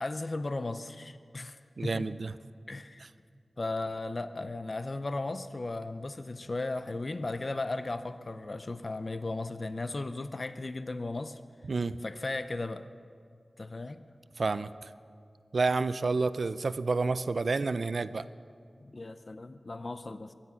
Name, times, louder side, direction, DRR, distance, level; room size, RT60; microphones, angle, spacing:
voice 1, 0.0-2.1 2.7-3.1 3.6-11.4 12.0-12.8 13.6-14.0 18.8-20.3, left 2 dB, 45° left, 11 dB, 0.5 m, -36 dB
voice 2, 1.8-2.3 11.7-11.9 14.4-14.9 15.5-18.3, right 3 dB, 70° right, 14 dB, 0.4 m, -29 dB
23.5 x 9.9 x 5.7 m, 2.2 s
wide cardioid pair, 90°, 0 cm